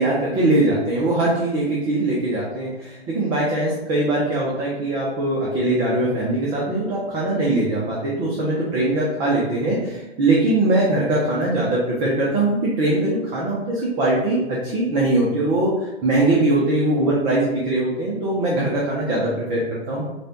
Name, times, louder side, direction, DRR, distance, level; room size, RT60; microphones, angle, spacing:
voice 1, 0.0-20.0, right 2 dB, 15° right, -4 dB, 0.5 m, -21 dB
4.8 x 2.2 x 2.8 m, 1.1 s
figure-of-eight pair, 110°, 32 cm